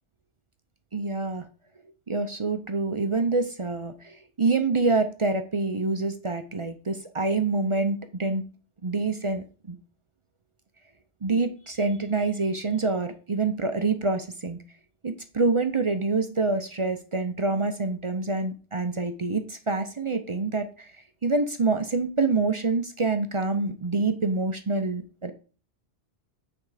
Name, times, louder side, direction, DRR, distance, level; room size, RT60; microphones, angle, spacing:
voice 1, 0.9-1.4 2.1-8.4 8.8-9.8 11.2-14.6 15.0-20.9 21.2-25.3, right 3 dB, 35° right, 7 dB, 0.5 m, -26 dB
8.8 x 3.5 x 4.8 m, 0.37 s
omnidirectional pair, 1.2 m